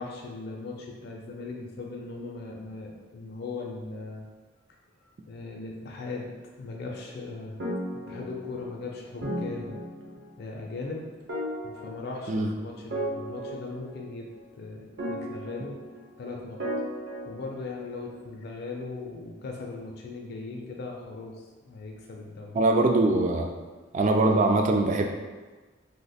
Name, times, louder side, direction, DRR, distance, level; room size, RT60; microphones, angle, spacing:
voice 1, 0.0-4.3 5.3-7.6 7.9-9.8 10.4-11.1 11.6-14.3 14.5-15.8 16.2-16.7 17.3-21.3 21.6-22.5, left 3 dB, 55° left, -1 dB, 0.5 m, -38 dB
sound 1, 7.6-8.8 9.2-10.4 11.3-12.5 12.9-14.3 15.0-16.2 16.6-18.0, equal, 60° right, 0.8 m, -35 dB
voice 2, 22.5-23.5 23.9-25.0, right 2 dB, 40° right, 3 dB, 0.3 m, -22 dB
2.8 x 2.1 x 4.1 m, 1.3 s
head